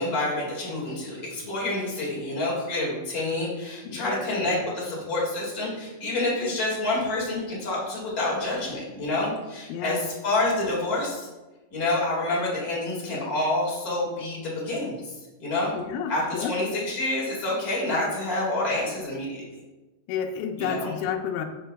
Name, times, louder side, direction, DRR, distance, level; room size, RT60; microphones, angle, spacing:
voice 1, 0.0-11.3 11.7-15.8 16.1-19.4 20.6-20.9, left 2 dB, 50° left, -6 dB, 1.0 m, -28 dB
voice 2, 3.9-4.2 9.7-10.0 15.7-16.5 20.1-21.5, left 7 dB, 90° left, 4 dB, 2.9 m, -30 dB
11.0 x 4.6 x 2.3 m, 1.1 s
omnidirectional pair, 5.0 m